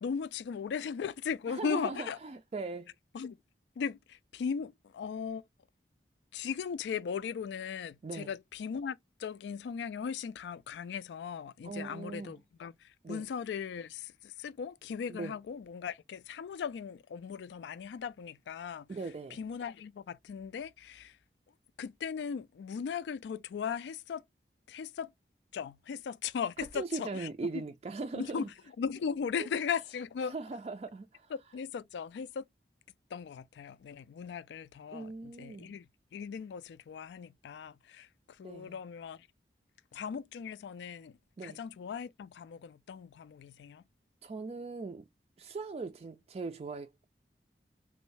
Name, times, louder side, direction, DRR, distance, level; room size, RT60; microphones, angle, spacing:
voice 1, 0.0-2.2 3.1-3.4 3.8-5.4 6.3-18.9 19.4-21.2 21.8-24.2 24.7-25.1 25.5-27.3 28.1-28.5 28.8-30.3 31.3-32.5 33.1-38.1 38.4-39.3 39.9-43.8, left 6 dB, 80° left, 0.3 m, -38 dB
voice 2, 1.5-2.9 8.0-8.3 11.6-12.4 13.0-13.3 15.1-15.4 18.9-19.4 26.6-28.5 30.2-31.3 34.9-35.8 38.4-38.8 41.4-41.6 44.2-45.1 45.4-47.1, right 3 dB, 35° right, 0.3 m, -40 dB
3.1 x 2.6 x 3.2 m
head